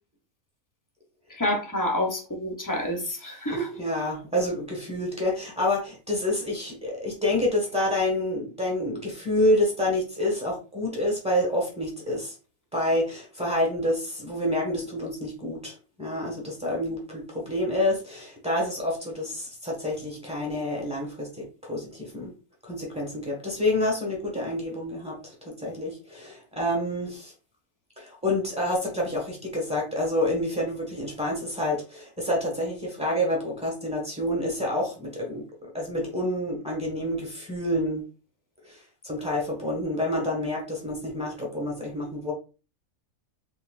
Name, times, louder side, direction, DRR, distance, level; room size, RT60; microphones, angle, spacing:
voice 1, 1.3-3.7, left 1 dB, 20° left, 2 dB, 0.6 m, -28 dB
voice 2, 3.5-12.3 12.7-22.3 22.6-27.3 28.0-38.0 38.7-38.8 39.0-42.3, left 1 dB, 5° right, -1 dB, 1.3 m, -28 dB
4.5 x 3.3 x 2.4 m, 0.33 s
omnidirectional pair, 1.5 m